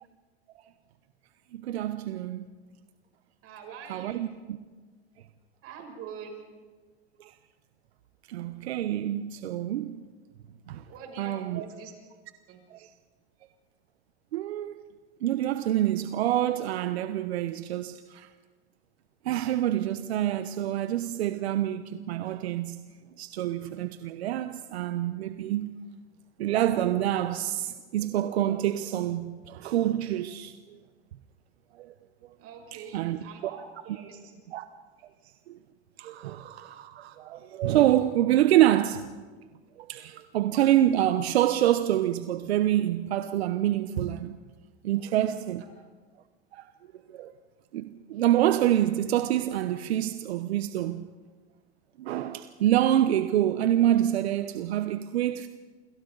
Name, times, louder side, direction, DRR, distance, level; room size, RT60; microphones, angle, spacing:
voice 1, 1.5-2.5 3.9-4.6 7.2-7.3 8.3-10.0 10.7-10.8 11.2-11.6 12.7-12.9 14.3-14.8 15.2-18.3 19.2-22.8 23.2-25.7 26.4-30.8 31.8-31.9 32.9-33.2 34.5-34.6 35.5-35.6 36.0-39.1 39.8-44.4 44.8-45.6 46.5-46.7 47.1-47.3 47.7-51.1 52.0-55.5, right 12 dB, 85° right, 1.0 m, -26 dB
voice 2, 3.4-4.3 5.6-6.4 10.9-11.9 12.5-12.6 32.4-34.3, right 6 dB, 45° right, 6.9 m, -44 dB
28.5 x 27.0 x 4.0 m
hypercardioid pair, 115°, 31 cm